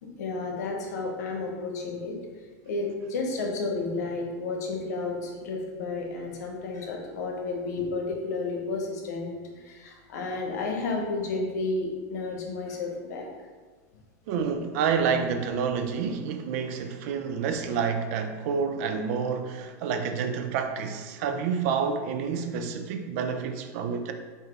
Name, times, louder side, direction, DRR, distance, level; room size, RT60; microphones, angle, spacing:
voice 1, 0.0-2.2 2.6-9.3 9.6-13.3, left 3 dB, 85° left, 0.9 m, -32 dB
voice 2, 14.3-24.1, right 6 dB, 60° right, 0.5 m, -28 dB
4.6 x 2.7 x 3.8 m
supercardioid pair, 135°, 9 cm